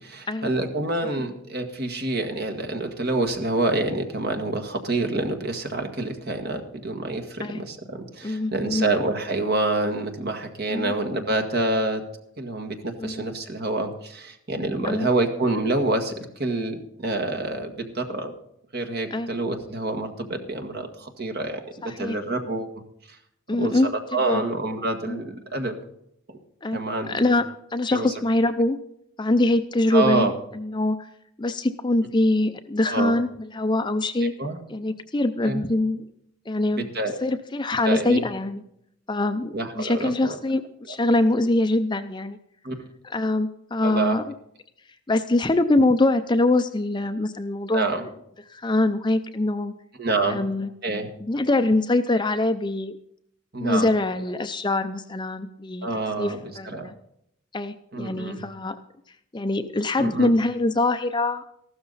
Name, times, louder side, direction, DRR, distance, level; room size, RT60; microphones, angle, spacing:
voice 1, 0.0-12.0 12.4-18.3 18.7-21.6 22.0-22.8 23.1-23.2 23.6-23.7 24.1-25.8 26.3-26.4 26.7-27.3 27.9-28.1 29.9-30.3 32.9-33.2 34.2-34.6 35.4-35.6 36.7-37.2 37.8-38.2 39.5-40.4 42.6-42.8 43.8-44.2 47.7-48.0 50.0-50.4 50.8-51.1 53.5-53.9 55.8-56.4 56.6-56.9 57.9-58.4 60.0-60.3, right 2 dB, 45° right, 5 dB, 1.7 m, -27 dB
voice 2, 8.2-8.8 10.7-10.9 13.0-13.3 14.9-15.1 19.1-19.3 21.8-22.2 23.5-23.9 24.3-24.4 25.1-25.2 26.6-26.8 27.1-28.8 29.2-31.1 31.4-34.3 34.7-36.1 36.5-36.9 37.2-38.6 39.1-40.6 40.9-42.4 43.0-44.2 45.1-48.0 48.5-49.7 50.3-50.7 51.2-52.9 53.6-55.9 56.2-56.9 57.5-58.7 59.3-61.6, left 2 dB, 20° left, 9 dB, 0.5 m, -23 dB
14.0 x 12.5 x 4.0 m, 0.74 s
head